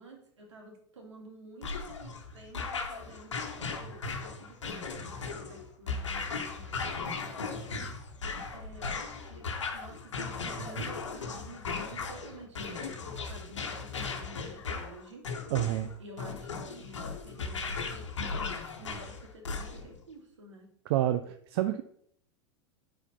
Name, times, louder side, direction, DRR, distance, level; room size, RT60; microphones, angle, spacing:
voice 1, 0.0-7.2 8.5-15.2 16.0-20.7, right 1 dB, 75° right, 1 dB, 2.2 m, -51 dB
sound 1, 1.6-20.0, left 4 dB, 80° left, 1.1 m, -37 dB
voice 2, 15.5-15.9 20.9-21.8, right 13 dB, 55° right, 10 dB, 0.5 m, -28 dB
6.9 x 4.2 x 5.2 m, 0.66 s
figure-of-eight pair, 85°, 15 cm